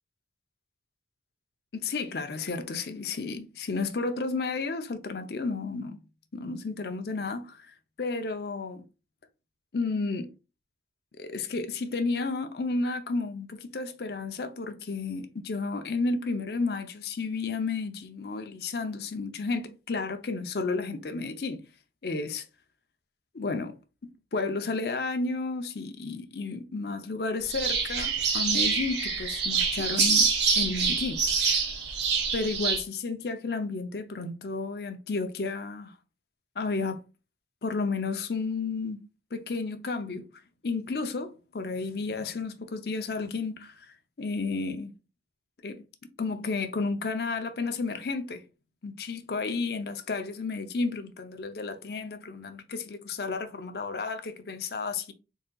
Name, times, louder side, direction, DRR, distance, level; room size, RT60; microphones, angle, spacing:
voice 1, 1.7-6.0 6.3-8.8 9.7-10.3 11.2-21.6 22.0-22.4 23.3-23.7 24.0-30.3 30.6-31.2 32.3-35.9 36.6-37.0 37.6-39.0 39.3-40.3 40.6-43.7 44.2-44.9 45.6-45.8 46.2-48.4 48.8-55.1, left 3 dB, 60° left, 0.6 m, -32 dB
sound 1, 27.5-32.8, right 5 dB, 75° right, 1.3 m, -26 dB
4.1 x 3.7 x 2.3 m
head